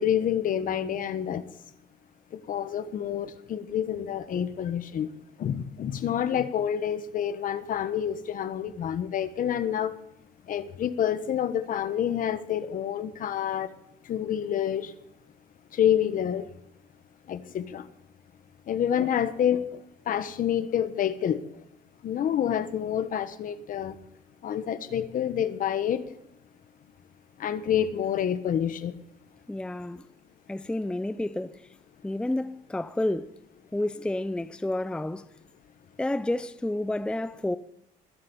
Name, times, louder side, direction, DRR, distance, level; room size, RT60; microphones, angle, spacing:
voice 1, 0.0-1.4 2.5-5.1 5.4-9.9 10.5-13.7 14.1-14.9 15.8-16.5 17.3-17.8 18.7-19.6 20.1-21.4 22.0-23.9 24.4-26.0 27.4-28.9, left 9 dB, 55° left, 1.3 m, -28 dB
voice 2, 29.5-30.1 30.5-31.7 32.0-33.4 33.7-35.3 36.0-37.6, left 1 dB, 5° left, 0.5 m, -30 dB
21.5 x 7.7 x 5.5 m
cardioid pair, 110°, 17 cm